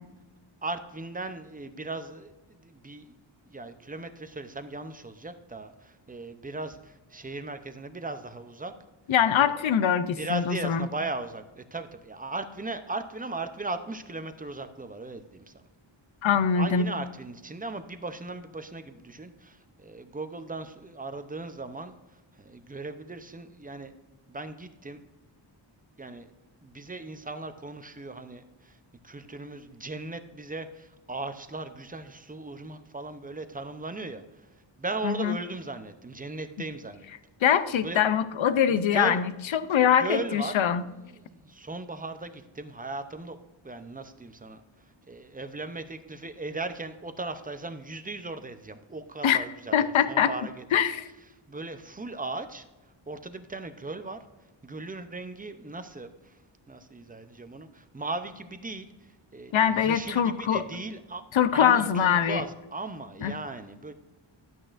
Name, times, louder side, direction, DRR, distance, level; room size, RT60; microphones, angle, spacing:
voice 1, 0.6-3.1 3.5-8.7 9.3-9.7 10.2-15.6 16.5-23.9 24.3-25.0 26.0-26.3 26.6-28.8 29.0-34.5 34.8-37.1 37.8-38.0 38.6-39.2 39.7-43.4 43.6-50.6 51.5-54.2 54.6-56.4 56.7-61.2 61.5-63.9, right 2 dB, 20° right, 9 dB, 0.6 m, -38 dB
voice 2, 9.1-10.9 16.2-16.9 35.0-35.4 37.4-40.8 49.2-49.4 49.7-50.3 50.7-51.1 59.5-60.6 61.3-62.4 63.2-63.3, left 8 dB, 75° left, 13 dB, 0.7 m, -23 dB
12.0 x 8.6 x 2.5 m, 1.1 s
wide cardioid pair, 130°, 48 cm